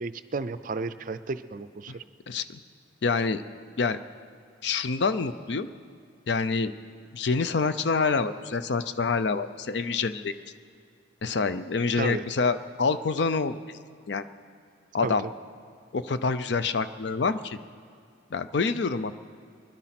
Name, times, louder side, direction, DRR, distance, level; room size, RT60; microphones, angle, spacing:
voice 1, 0.0-2.0 12.0-12.2 15.0-15.1, right 4 dB, 45° right, 13 dB, 0.5 m, -33 dB
voice 2, 2.3-2.6 3.0-3.4 3.8-4.0 4.6-5.7 6.3-6.7 7.1-10.3 11.2-13.5 14.1-14.3 14.9-15.3 15.9-17.6 18.3-19.2, left 4 dB, 65° left, 12 dB, 0.5 m, -26 dB
21.0 x 11.0 x 5.9 m, 2.1 s
head